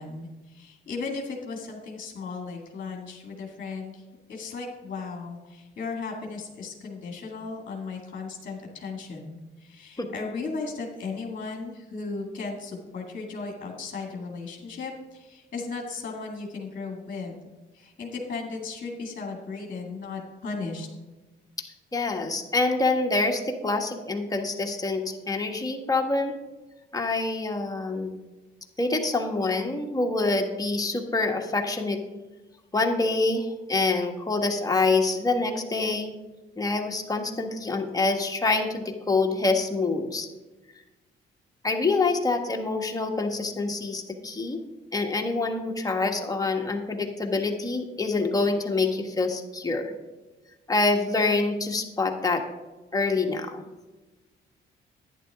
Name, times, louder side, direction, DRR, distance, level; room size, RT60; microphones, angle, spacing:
voice 1, 0.0-4.0 4.3-17.4 17.7-20.9, left 4 dB, 45° left, 0 dB, 2.1 m, -36 dB
voice 2, 21.9-26.3 26.9-28.1 28.8-32.0 32.7-36.1 36.6-40.3 41.6-44.6 44.9-49.9 50.7-52.4 52.9-53.6, left 3 dB, 20° left, 2 dB, 1.6 m, -26 dB
11.0 x 9.8 x 3.6 m, 1.2 s
cardioid pair, 90°, 20 cm